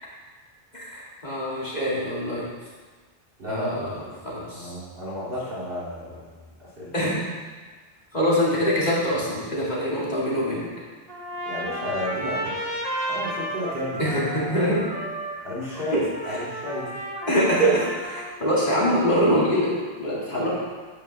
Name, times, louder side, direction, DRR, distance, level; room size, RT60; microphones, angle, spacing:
voice 1, 0.7-2.5 3.5-3.9 4.2-4.7 6.9-7.2 8.1-10.6 14.0-14.8 17.3-19.7 20.0-20.5, equal, 45° left, -6 dB, 2.3 m, -24 dB
voice 2, 3.4-3.7 4.0-4.2 4.5-6.9 11.4-12.6 13.1-14.2 14.6-14.7 15.4-16.9, left 1 dB, 65° right, -7 dB, 2.8 m, -33 dB
Trumpet, 11.1-18.4, right 1 dB, 40° right, 1.1 m, -33 dB
9.2 x 8.5 x 3.3 m, 1.4 s
omnidirectional pair, 1.0 m